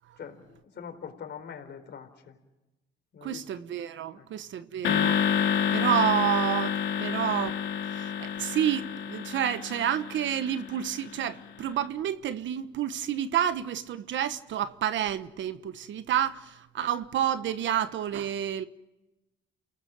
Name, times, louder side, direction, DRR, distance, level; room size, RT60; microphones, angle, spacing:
voice 1, 0.2-2.4 3.1-3.4 4.1-4.3, left 7 dB, 60° left, 4.3 m, -43 dB
voice 2, 3.2-5.2 5.7-7.6 7.9-18.6, right 10 dB, 70° right, 1.2 m, -29 dB
sound 1, 4.8-11.2, left 8 dB, 80° left, 2.6 m, -29 dB
29.0 x 18.5 x 7.6 m
cardioid pair, 90°, 20 cm